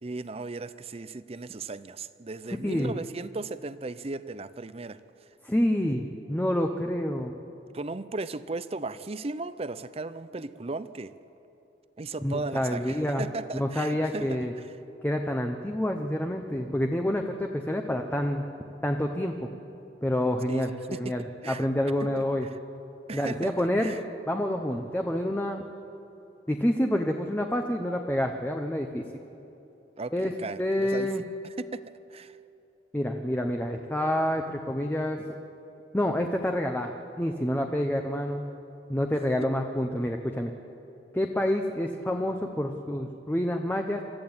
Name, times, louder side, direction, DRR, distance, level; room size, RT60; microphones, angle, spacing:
voice 1, 0.0-5.0 7.7-11.1 12.0-14.4 20.5-20.6 20.9-21.7 22.0-22.6 23.1-24.0 30.0-31.1 31.6-31.8 32.1-32.4, right 3 dB, 35° right, 14 dB, 0.6 m, -36 dB
voice 2, 5.4-7.3 12.2-13.2 13.5-14.5 15.0-18.4 18.8-19.3 20.0-22.5 23.1-24.0 24.3-25.6 26.5-29.0 30.1-31.2 32.9-35.2 35.9-36.9 37.2-38.4 38.9-40.5 41.1-44.0, left 1 dB, 10° left, 3 dB, 0.9 m, -28 dB
26.0 x 14.0 x 8.9 m, 2.9 s
head